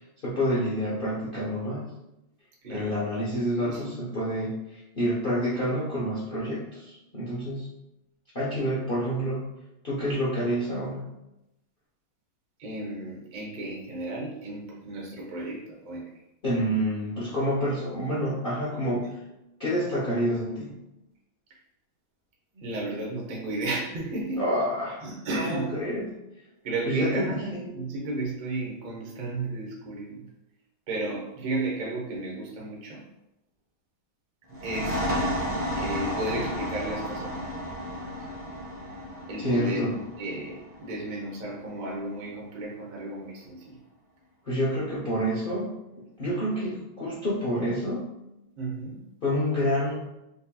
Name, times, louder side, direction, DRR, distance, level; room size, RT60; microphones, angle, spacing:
voice 1, 0.2-1.9 2.7-7.7 8.3-9.4 9.8-11.0 16.4-19.1 19.6-20.7 24.4-25.0 25.3-26.2 26.9-27.8 39.4-40.0 44.5-45.8 46.2-48.1 49.2-49.9, equal, 65° left, -8 dB, 0.5 m, -28 dB
voice 2, 3.5-4.1 12.6-16.1 22.5-24.5 25.0-25.8 26.6-30.3 30.9-33.0 34.5-35.1 35.7-37.4 39.3-39.9 40.2-43.8 48.6-49.0, right 2 dB, 75° right, -3 dB, 0.4 m, -33 dB
sound 1, 34.5-41.9, equal, 10° right, 0.6 m, -33 dB
5.2 x 2.7 x 2.3 m, 0.91 s
omnidirectional pair, 2.2 m